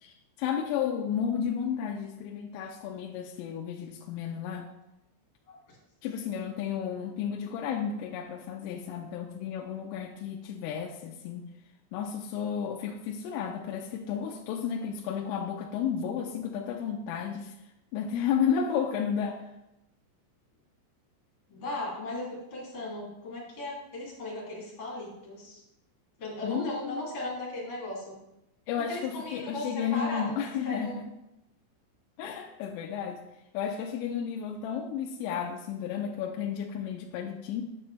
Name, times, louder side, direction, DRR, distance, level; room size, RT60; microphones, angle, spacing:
voice 1, 0.0-4.7 6.0-11.4 11.9-17.5 17.9-19.4 26.4-27.0 28.7-30.9 32.2-33.2 33.5-37.6, left 8 dB, 85° left, 1 dB, 3.2 m, -32 dB
voice 2, 21.5-25.6 26.2-28.2 28.8-30.4 30.6-31.0, left 1 dB, 35° left, -5 dB, 2.7 m, -37 dB
8.8 x 8.6 x 3.3 m, 0.88 s
omnidirectional pair, 5.8 m